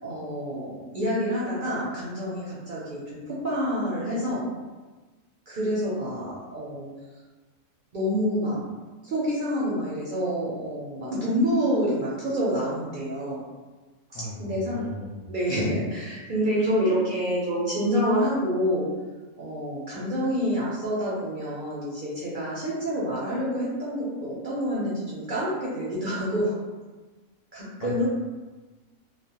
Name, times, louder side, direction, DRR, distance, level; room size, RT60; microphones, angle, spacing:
voice 1, 0.0-4.4 5.5-6.9 7.9-8.6 9.0-13.4 14.1-14.8 15.3-18.9 19.4-26.5 27.5-28.0, equal, 55° right, -8 dB, 0.5 m, -27 dB
voice 2, 14.1-15.3 27.8-28.0, left 1 dB, 70° left, -3 dB, 0.9 m, -36 dB
2.4 x 2.1 x 2.8 m, 1.3 s
omnidirectional pair, 1.4 m